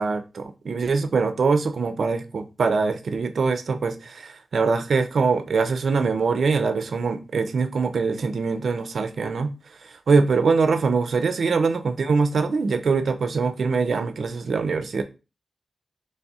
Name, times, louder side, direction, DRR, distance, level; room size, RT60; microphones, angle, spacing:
voice 1, 0.0-9.5 9.8-15.0, right 4 dB, 70° right, 0.4 m, -23 dB
4.1 x 3.2 x 2.3 m
wide cardioid pair, 95°, 0 cm